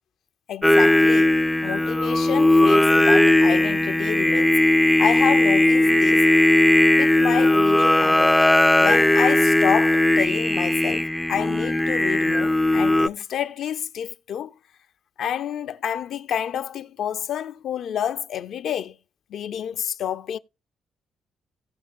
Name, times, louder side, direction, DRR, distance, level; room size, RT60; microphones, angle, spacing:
voice 1, 0.5-1.3 1.6-4.5 5.0-6.3 6.9-8.3 8.8-14.5 15.2-19.0 19.3-20.4, left 9 dB, 70° left, 0.7 m, -29 dB
Singing, 0.6-13.1, left 1 dB, 5° left, 0.4 m, -18 dB
17.5 x 6.0 x 2.5 m
cardioid pair, 90°, 0 cm